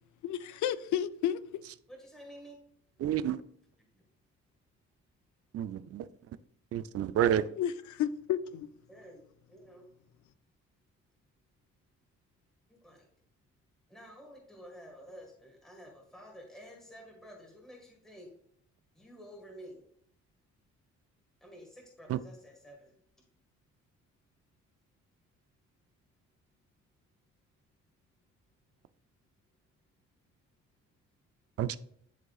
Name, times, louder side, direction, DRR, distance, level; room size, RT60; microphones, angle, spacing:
voice 1, 0.2-1.4 7.6-8.7, left 10 dB, 75° left, 0.5 m, -32 dB
voice 2, 1.9-2.6 3.9-4.0 8.9-9.8 12.7-13.1 13.9-18.3 18.9-19.8 21.4-22.9, equal, ahead, 1.7 m, -51 dB
voice 3, 3.0-3.4 5.5-6.1 6.7-7.5 22.1-22.2 31.6-31.8, right 10 dB, 50° right, 0.4 m, -29 dB
11.0 x 3.7 x 2.4 m
cardioid pair, 90°, 30 cm